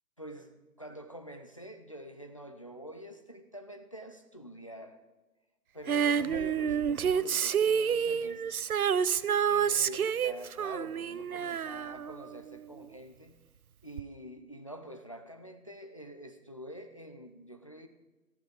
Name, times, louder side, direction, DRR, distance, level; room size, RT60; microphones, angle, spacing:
voice 1, 0.2-5.0 5.7-8.6 9.5-13.4 13.8-17.9, equal, 20° left, 7 dB, 0.5 m, -46 dB
Female singing, 5.9-12.8 14.0-14.1, right 7 dB, 65° right, 0.6 m, -29 dB
14.0 x 13.0 x 5.2 m, 1.2 s
figure-of-eight pair, 135°, 48 cm